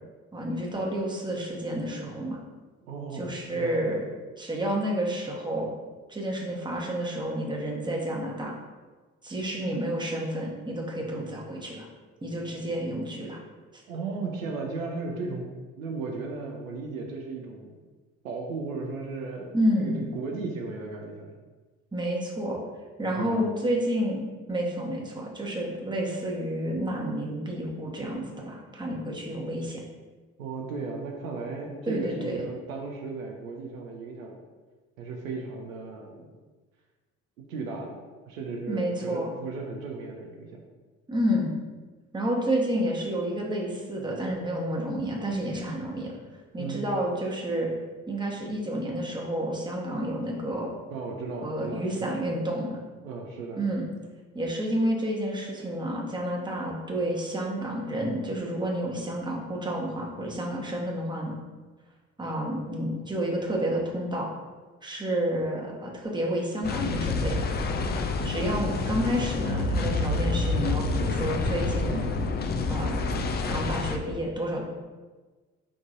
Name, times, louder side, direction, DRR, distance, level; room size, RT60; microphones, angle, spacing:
voice 1, 0.3-2.4 3.1-4.0 4.4-5.7 6.1-8.5 9.2-11.9 12.2-13.4 19.5-20.1 21.9-22.6 23.0-29.8 31.8-32.4 38.7-39.3 41.1-41.5 42.1-46.1 46.5-47.7 48.1-50.7 51.4-52.8 53.6-53.8 54.3-61.4 62.2-64.3 64.8-67.5 68.2-72.1 72.7-73.0 73.5-74.6, equal, 10° right, -2 dB, 1.1 m, -30 dB
voice 2, 2.8-3.7 13.9-15.5 15.8-17.8 18.2-21.3 23.2-23.4 30.4-34.4 35.0-36.3 37.5-38.0 38.3-40.6 46.6-46.9 50.9-52.1 53.0-53.6, right 4 dB, 80° right, 1 dB, 0.6 m, -35 dB
sound 1, 66.6-74.0, left 3 dB, 25° left, 0.4 m, -28 dB
4.9 x 3.7 x 2.5 m, 1.3 s
figure-of-eight pair, 45°, 40 cm